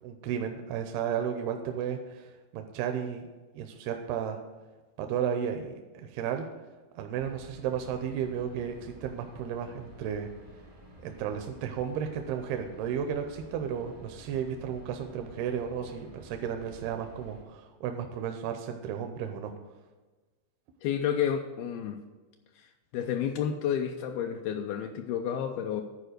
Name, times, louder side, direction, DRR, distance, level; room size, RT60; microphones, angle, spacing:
voice 1, 0.0-3.2 3.5-4.4 5.0-6.5 7.0-10.3 11.0-19.5, right 8 dB, 85° right, 6 dB, 2.6 m, -33 dB
sound 1, 7.2-17.4, equal, 60° right, 0.3 m, -52 dB
voice 2, 20.8-22.0 22.6-22.7 22.9-25.8, left 8 dB, 85° left, 4 dB, 2.4 m, -30 dB
11.5 x 4.6 x 6.5 m, 1.3 s
omnidirectional pair, 4.5 m